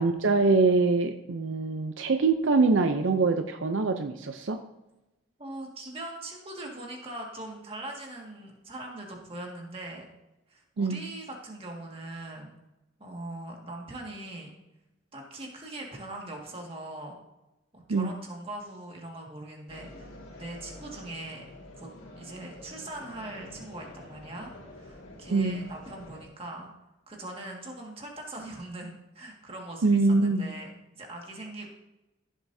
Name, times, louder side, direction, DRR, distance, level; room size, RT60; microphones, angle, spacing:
voice 1, 0.0-4.6 10.8-11.0 17.9-18.1 25.3-25.6 29.8-30.5, right 3 dB, 70° right, 7 dB, 0.6 m, -24 dB
voice 2, 5.4-10.1 10.5-12.5 13.0-14.5 15.1-17.2 17.7-20.1 20.4-21.4 21.8-21.9 22.2-26.7 27.1-31.7, right 1 dB, 30° right, 0 dB, 1.9 m, -41 dB
sound 1, 19.7-26.3, left 1 dB, 75° left, 2.1 m, -48 dB
15.0 x 7.5 x 2.7 m, 0.97 s
head